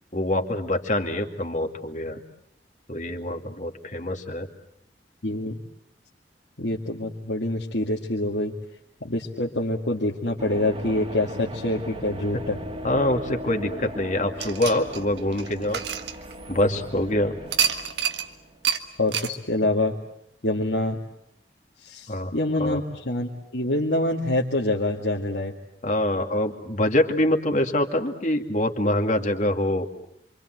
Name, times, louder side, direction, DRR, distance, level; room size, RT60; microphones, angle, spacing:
voice 1, 0.1-2.2 2.9-4.5 12.8-15.8 16.5-17.3 22.1-22.3 22.6-22.8 25.8-29.9, left 1 dB, 45° left, 5 dB, 2.4 m, -25 dB
voice 2, 5.2-5.6 6.6-8.5 9.0-12.6 19.0-20.0 20.4-21.0 21.8-25.5, left 1 dB, 80° left, -2 dB, 2.2 m, -26 dB
sound 1, 10.4-19.0, equal, 35° right, 2.4 m, -38 dB
sound 2, 14.4-16.8 17.5-18.3 18.6-18.8 19.1-19.3, right 8 dB, 75° right, 1.7 m, -27 dB
27.5 x 25.5 x 7.8 m, 0.76 s
head